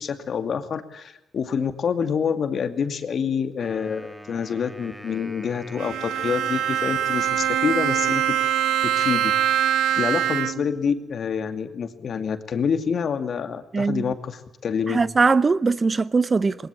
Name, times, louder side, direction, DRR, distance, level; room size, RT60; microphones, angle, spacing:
voice 1, 0.0-8.2 8.8-9.3 10.0-15.0, left 6 dB, 55° left, 2.4 m, -27 dB
Wind instrument woodwind instrument, 3.6-7.9, right 1 dB, 10° right, 2.7 m, -45 dB
Bowed string instrument, 5.8-10.8, right 10 dB, 85° right, 1.2 m, -23 dB
voice 2, 13.7-14.1 14.9-16.6, right 4 dB, 30° right, 0.8 m, -20 dB
20.5 x 20.0 x 8.4 m
cardioid pair, 90°, 0 cm